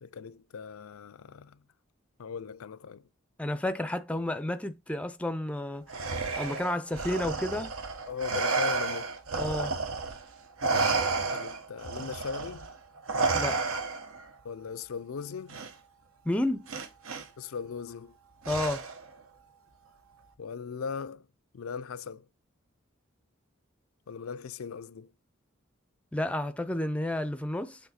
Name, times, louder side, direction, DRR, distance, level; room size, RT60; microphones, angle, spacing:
voice 1, 0.0-1.6 2.2-3.0 8.1-9.2 11.3-12.7 14.4-15.6 17.4-18.1 20.4-21.3 21.5-22.3 24.1-25.1, left 6 dB, 85° left, 0.5 m, -38 dB
voice 2, 3.4-5.9 6.4-7.7 9.4-9.7 13.3-13.6 16.3-16.7 18.5-18.9 26.1-27.8, left 1 dB, 5° left, 0.4 m, -31 dB
Respiratory sounds, 5.9-10.2 10.6-14.2 15.5-15.7 16.7-17.2 18.4-19.1, right 4 dB, 85° right, 1.0 m, -31 dB
6.9 x 3.5 x 4.2 m
head